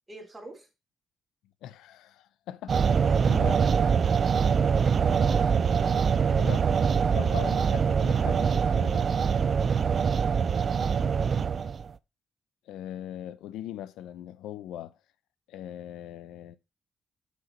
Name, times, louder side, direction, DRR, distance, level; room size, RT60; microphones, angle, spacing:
voice 1, 0.1-0.7 3.1-3.3 4.8-5.9 6.3-6.6, right 2 dB, 15° right, 3.6 m, -46 dB
voice 2, 1.6-2.8 3.3-3.6 5.3-5.4 6.3-6.6 7.1-9.1 12.7-15.0 15.5-16.6, left 12 dB, 90° left, 0.7 m, -40 dB
sound 1, 2.7-11.9, right 6 dB, 45° right, 0.5 m, -24 dB
7.5 x 6.3 x 3.9 m
cardioid pair, 90°, 0 cm